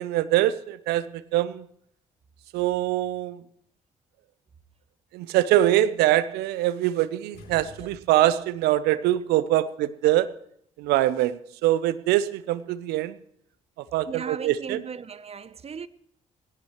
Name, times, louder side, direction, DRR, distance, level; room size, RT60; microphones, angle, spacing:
voice 1, 0.0-1.7 2.5-3.4 5.1-10.3 10.8-13.2 13.9-14.8, right 14 dB, 75° right, 0.7 m, -23 dB
sound 1, 7.3-8.6, left 4 dB, 70° left, 3.1 m, -48 dB
voice 2, 9.4-9.7 14.1-15.9, right 6 dB, 40° right, 0.8 m, -38 dB
19.0 x 16.5 x 3.1 m
hypercardioid pair, 45°, 17 cm